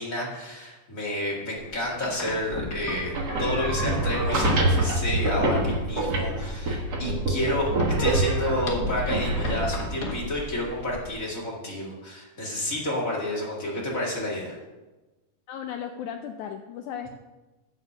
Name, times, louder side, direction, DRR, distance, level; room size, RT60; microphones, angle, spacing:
voice 1, 0.0-7.7 8.0-14.6, left 1 dB, 30° left, -4 dB, 1.8 m, -30 dB
sound 1, 1.6-11.1, left 2 dB, 60° left, 1.0 m, -37 dB
sound 2, 2.9-10.9, right 2 dB, 85° right, 0.8 m, -26 dB
voice 2, 15.5-17.1, left 8 dB, 85° left, 5 dB, 1.7 m, -35 dB
8.4 x 7.8 x 6.0 m, 1.1 s
omnidirectional pair, 4.1 m